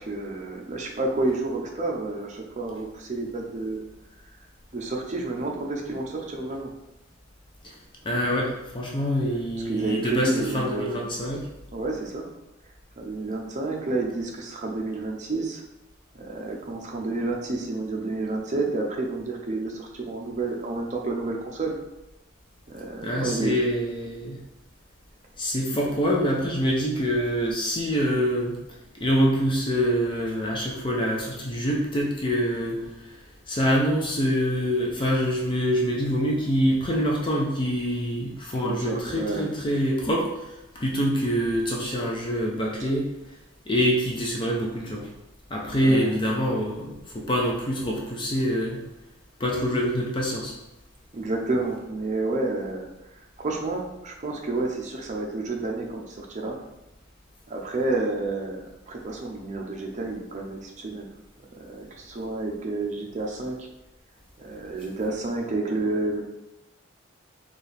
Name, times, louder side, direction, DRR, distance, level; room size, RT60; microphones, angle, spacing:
voice 1, 0.0-3.8 4.7-6.7 9.7-11.0 11.7-12.3 13.0-15.6 16.1-21.7 22.7-23.6 25.7-25.8 38.6-39.4 45.8-46.2 51.1-52.9 53.2-56.6 57.5-61.1 61.6-63.7 64.4-66.2, right 2 dB, 40° right, 1 dB, 0.6 m, -30 dB
voice 2, 8.0-11.5 23.0-24.4 25.4-28.6 29.0-33.2 33.5-43.4 43.7-45.1 45.5-48.8 49.4-50.5, equal, 25° left, -2 dB, 0.5 m, -25 dB
4.4 x 2.4 x 3.3 m, 0.94 s
head